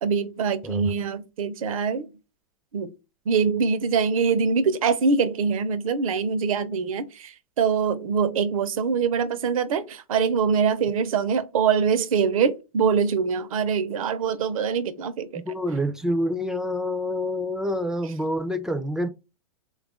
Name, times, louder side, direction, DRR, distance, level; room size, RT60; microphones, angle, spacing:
voice 1, 0.0-2.1 2.7-2.9 3.3-15.4, right 6 dB, 75° right, 0.6 m, -24 dB
voice 2, 15.3-19.1, equal, 5° right, 0.3 m, -27 dB
3.4 x 2.3 x 3.5 m
hypercardioid pair, 115°, 18 cm